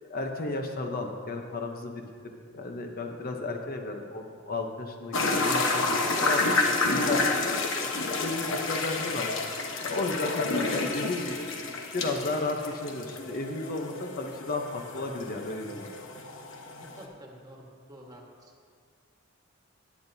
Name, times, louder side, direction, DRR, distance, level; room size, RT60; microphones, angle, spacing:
voice 1, 0.1-5.2 5.4-7.5 8.2-9.3 9.8-11.5 11.9-15.9, left 3 dB, 45° left, 3 dB, 0.8 m, -33 dB
sound 1, 5.1-17.0, left 3 dB, 65° left, 1.2 m, -30 dB
voice 2, 16.9-18.5, equal, 20° right, -1 dB, 1.5 m, -49 dB
17.5 x 9.0 x 2.8 m, 2.1 s
head